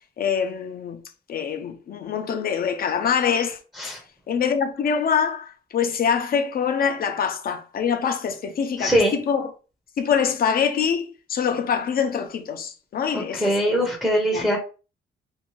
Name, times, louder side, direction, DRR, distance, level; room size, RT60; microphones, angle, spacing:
voice 1, 0.2-1.0 1.3-3.9 4.3-9.5 10.0-13.8 14.3-14.5, left 7 dB, 50° left, 0.5 m, -25 dB
voice 2, 8.8-9.1 13.1-14.6, equal, ahead, 0.6 m, -22 dB
2.6 x 2.2 x 3.0 m
cardioid pair, 135°, 20 cm